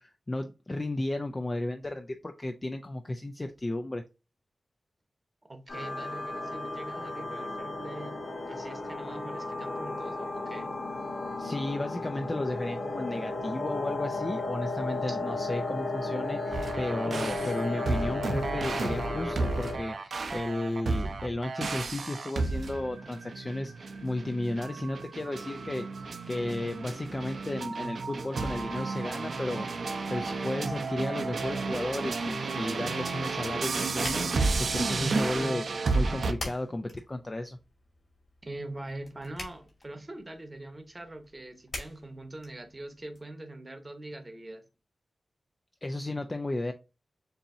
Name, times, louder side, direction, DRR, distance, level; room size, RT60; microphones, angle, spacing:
voice 1, 0.0-4.0 11.4-35.6 35.9-37.6 45.8-46.7, left 2 dB, 25° left, 0.4 m, -34 dB
voice 2, 5.5-10.7 15.0-15.2 17.0-17.2 35.4-35.9 38.4-44.6, right 2 dB, 25° right, 0.9 m, -43 dB
sound 1, 5.7-19.8, left 2 dB, 85° left, 2.9 m, -34 dB
sound 2, 16.5-36.3, right 3 dB, 70° right, 0.7 m, -32 dB
sound 3, 34.5-43.2, left 2 dB, 45° left, 2.4 m, -47 dB
6.9 x 2.8 x 2.6 m
wide cardioid pair, 145°, 0 cm